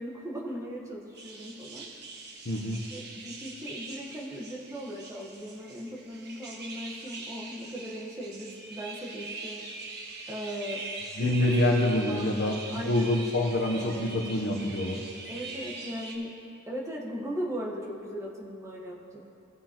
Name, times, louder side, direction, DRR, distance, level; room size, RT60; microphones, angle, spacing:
voice 1, 0.0-1.9 2.7-9.6 10.3-10.8 11.1-11.4 12.0-12.3 12.7-13.2 15.3-16.3 16.7-19.2, equal, 15° right, -3 dB, 1.2 m, -38 dB
sound 1, 1.2-16.1, right 3 dB, 50° right, 1.3 m, -42 dB
voice 2, 2.5-2.8 11.2-12.6 12.8-15.0, left 1 dB, 50° left, 2 dB, 0.9 m, -26 dB
17.0 x 7.7 x 2.9 m, 2.7 s
head